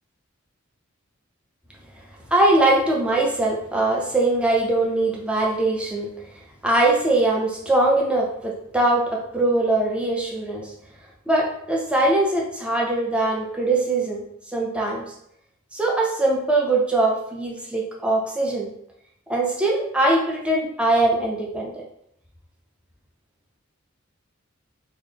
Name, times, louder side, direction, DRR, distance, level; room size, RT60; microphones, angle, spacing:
voice 1, 2.3-6.1 6.6-10.7 11.3-14.2 14.5-15.1 15.7-18.7 19.3-21.8, right 2 dB, 5° right, -2 dB, 0.6 m, -21 dB
3.8 x 2.1 x 3.4 m, 0.72 s
head